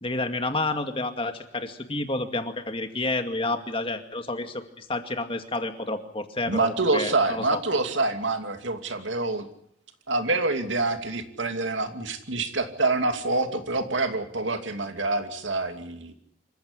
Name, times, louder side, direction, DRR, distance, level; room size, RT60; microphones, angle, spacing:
voice 1, 0.0-7.6, left 2 dB, 30° left, 6 dB, 2.2 m, -30 dB
voice 2, 6.4-9.5 10.1-16.1, right 3 dB, 85° right, 6 dB, 2.7 m, -26 dB
26.5 x 15.5 x 9.9 m, 0.72 s
head